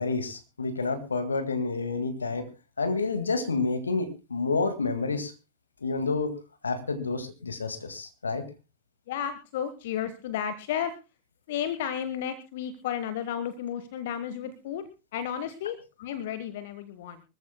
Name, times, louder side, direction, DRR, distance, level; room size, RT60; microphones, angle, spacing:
voice 1, 0.0-2.5 2.8-5.3 5.8-6.4 6.6-8.5, left 3 dB, 80° left, 9 dB, 1.9 m, -29 dB
voice 2, 9.1-10.9 11.5-14.8 15.1-17.2, left 9 dB, 55° left, 12 dB, 1.2 m, -33 dB
24.5 x 14.5 x 2.2 m, 0.29 s
figure-of-eight pair, 90°, 0 cm